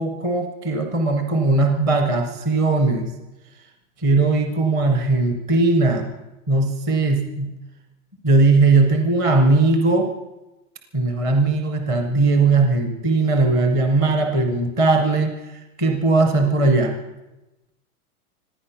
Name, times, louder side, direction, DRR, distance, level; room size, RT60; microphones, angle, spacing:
voice 1, 0.0-3.1 4.0-6.1 6.5-7.5 8.2-10.1 10.9-16.9, right 3 dB, 10° right, 4 dB, 0.5 m, -19 dB
25.5 x 9.6 x 5.7 m, 1.0 s
supercardioid pair, 180°, 43 cm